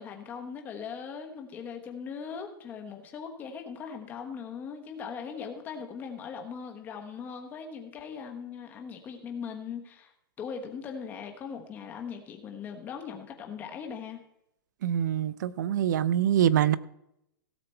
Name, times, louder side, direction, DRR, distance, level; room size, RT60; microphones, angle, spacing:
voice 1, 0.0-10.1 10.4-14.2, left 6 dB, 15° left, 1.2 m, -40 dB
voice 2, 14.8-16.8, right 10 dB, 55° right, 0.5 m, -24 dB
16.5 x 6.9 x 4.4 m
hypercardioid pair, 170°, 12 cm